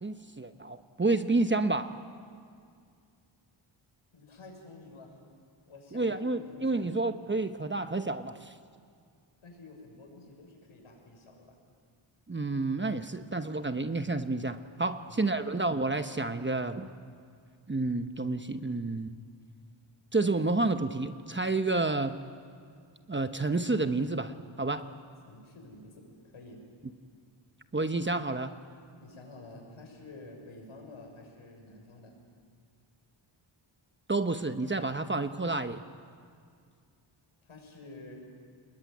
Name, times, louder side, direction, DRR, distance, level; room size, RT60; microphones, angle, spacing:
voice 1, 0.0-1.9 5.9-8.5 12.3-16.9 17.7-19.2 20.1-22.2 23.1-24.9 27.7-28.5 34.1-35.8, right 3 dB, 25° right, 9 dB, 1.0 m, -30 dB
voice 2, 4.1-5.2 5.7-6.9 9.4-11.6 14.9-15.5 25.2-26.6 29.0-32.2 37.4-38.2, left 2 dB, 75° left, 1 dB, 6.8 m, -50 dB
29.0 x 21.0 x 9.3 m, 2.2 s
wide cardioid pair, 100°, 49 cm